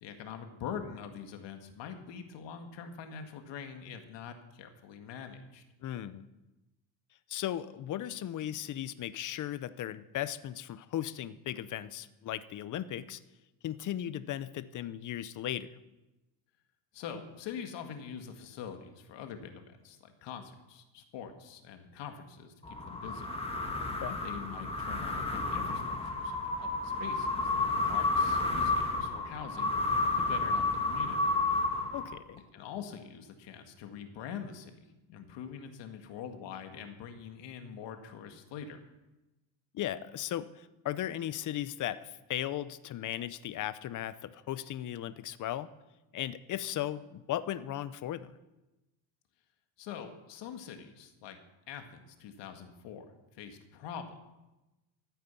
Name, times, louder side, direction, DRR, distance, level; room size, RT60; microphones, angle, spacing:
voice 1, 0.0-5.6 16.9-23.3 24.2-31.2 32.3-34.7 35.1-38.8 49.8-51.4 51.7-53.1 53.3-54.2, left 7 dB, 65° left, 6 dB, 2.0 m, -44 dB
voice 2, 5.8-6.3 7.3-13.2 13.6-15.7 24.0-24.2 31.9-32.4 39.7-45.7 46.1-48.3, left 12 dB, 40° left, 15 dB, 0.7 m, -36 dB
sound 1, 22.6-32.4, left 3 dB, 10° left, 1.7 m, -31 dB
14.0 x 9.3 x 6.9 m, 1.0 s
cardioid pair, 145°, 46 cm